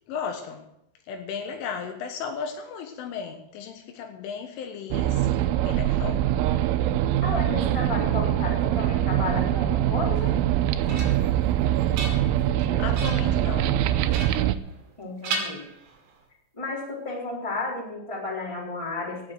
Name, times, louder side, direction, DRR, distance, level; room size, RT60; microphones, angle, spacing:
voice 1, 0.1-0.6 1.1-5.3 5.6-6.3 12.8-13.7, left 6 dB, 80° left, 3.7 m, -35 dB
sound 1, 4.9-14.6, right 12 dB, 80° right, 2.9 m, -23 dB
voice 2, 7.2-10.3 15.0-15.7 16.5-19.2, left 2 dB, 5° left, 3.4 m, -32 dB
sound 2, 10.4-11.4 11.8-12.6 12.9-13.4 14.1-15.0 15.2-16.2, right 3 dB, 60° right, 4.2 m, -35 dB
17.0 x 7.4 x 6.4 m
omnidirectional pair, 5.7 m